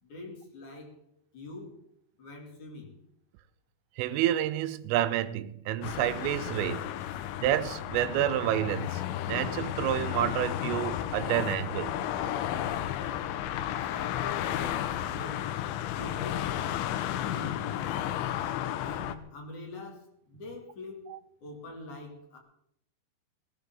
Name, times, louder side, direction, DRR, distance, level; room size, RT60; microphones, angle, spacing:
voice 1, 0.0-1.0 1.3-1.8 2.2-3.0 13.8-14.7 15.0-15.6 15.9-16.6 17.2-17.8 18.8-22.4, left 2 dB, 40° left, 3.9 m, -44 dB
voice 2, 4.0-6.9 7.4-12.0, right 12 dB, 85° right, 3.4 m, -29 dB
sound 1, 5.8-19.1, left 11 dB, 80° left, 3.3 m, -33 dB
18.0 x 17.0 x 3.9 m
omnidirectional pair, 5.7 m